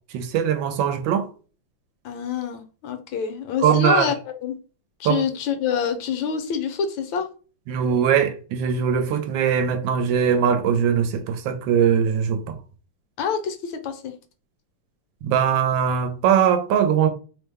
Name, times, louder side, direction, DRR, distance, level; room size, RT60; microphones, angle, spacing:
voice 1, 0.1-1.3 3.6-4.1 5.0-5.2 7.7-12.6 15.2-17.1, right 8 dB, 80° right, 1.3 m, -21 dB
voice 2, 2.0-4.1 4.4-4.5 5.0-7.3 13.2-14.1, left 7 dB, 80° left, 1.4 m, -26 dB
3.4 x 2.1 x 3.3 m
omnidirectional pair, 2.1 m